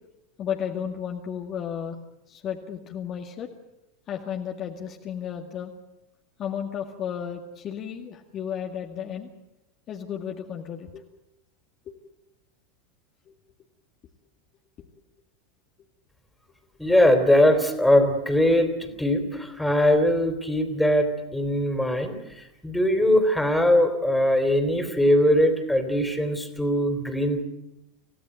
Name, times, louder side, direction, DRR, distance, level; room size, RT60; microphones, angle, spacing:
voice 1, 0.4-2.0 2.3-3.5 4.1-5.7 6.4-9.3 9.9-11.0 11.9-12.0 13.3-13.4 14.8-14.9, left 8 dB, 35° left, 2 dB, 2.1 m, -33 dB
voice 2, 16.8-27.4, left 1 dB, 5° left, 7 dB, 3.6 m, -21 dB
27.0 x 16.5 x 9.3 m, 0.94 s
figure-of-eight pair, 85°, 0 cm